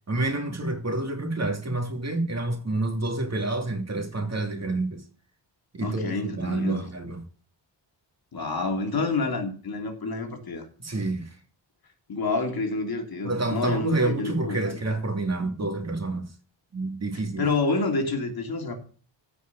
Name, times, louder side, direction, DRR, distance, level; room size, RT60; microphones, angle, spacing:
voice 1, 0.1-5.0 5.7-7.2 10.8-11.4 13.2-16.3 16.7-17.5, right 2 dB, 35° right, 2.5 m, -28 dB
voice 2, 5.8-6.8 8.3-10.7 12.1-14.8 17.4-18.7, left 3 dB, 50° left, 2.9 m, -28 dB
15.5 x 5.5 x 7.8 m
wide cardioid pair, 140°, 46 cm